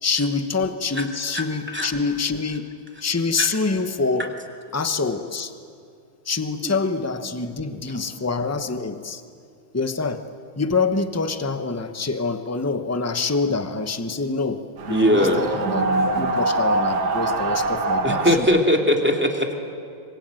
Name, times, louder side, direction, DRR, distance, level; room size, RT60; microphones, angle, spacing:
voice 1, 0.0-2.7 3.0-4.3 4.7-5.5 6.2-9.2 9.7-10.3 10.6-18.5, left 4 dB, 10° left, 9 dB, 0.8 m, -26 dB
voice 2, 1.3-1.9 3.4-3.5 6.6-6.8 14.9-15.4 18.0-19.5, equal, 5° right, 2 dB, 2.4 m, -20 dB
sound 1, 14.8-18.4, right 2 dB, 80° right, 2.4 m, -23 dB
26.0 x 24.5 x 9.2 m, 2.4 s
omnidirectional pair, 2.1 m